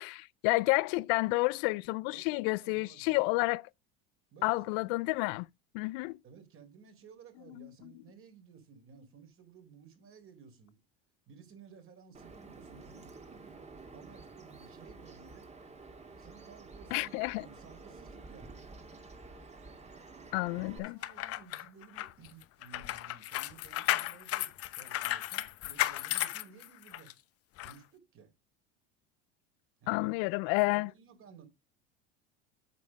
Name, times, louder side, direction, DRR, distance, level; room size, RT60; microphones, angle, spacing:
voice 1, 0.0-3.6 4.4-5.5 5.7-6.2 7.6-7.7 16.9-17.5 20.3-21.0 29.9-30.9, left 25 dB, 65° left, 0.5 m, -30 dB
voice 2, 2.1-3.3 4.3-4.9 6.2-10.8 11.3-13.6 13.9-15.5 16.2-18.8 20.5-27.1 27.6-28.3 29.8-30.4 30.6-31.5, right 6 dB, 45° right, 4.0 m, -56 dB
Bird vocalization bird call bird song, 12.1-20.8, right 3 dB, 20° right, 2.2 m, -51 dB
sound 1, 20.8-27.1 27.6-27.7, left 15 dB, 50° left, 0.9 m, -34 dB
8.4 x 7.1 x 5.3 m
hypercardioid pair, 85°, 31 cm